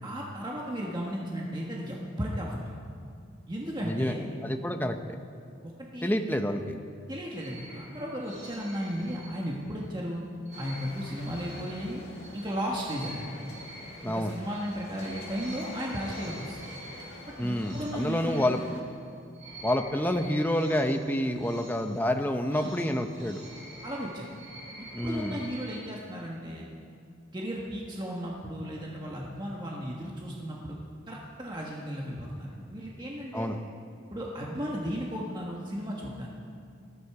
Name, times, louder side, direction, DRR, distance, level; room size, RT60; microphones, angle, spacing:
voice 1, 0.0-2.7 3.5-4.2 5.6-6.2 7.1-10.2 10.6-12.0 12.3-13.2 14.0-16.6 17.4-18.7 22.5-22.7 23.8-24.3 24.8-26.7 27.3-30.8 31.1-33.5 34.1-36.3, equal, 20° right, -3 dB, 1.4 m, -35 dB
voice 2, 3.8-4.2 4.4-5.2 6.0-6.8 14.0-14.3 17.4-18.6 19.6-23.4 24.9-25.4 33.3-33.6, left 1 dB, 10° left, 5 dB, 0.7 m, -28 dB
sound 1, 7.3-9.8 10.4-19.0 19.3-25.9, right 1 dB, 35° right, 5.3 m, -47 dB
sound 2, 10.5-18.8, left 2 dB, 55° left, 2.4 m, -47 dB
20.0 x 14.5 x 4.8 m, 2.4 s
head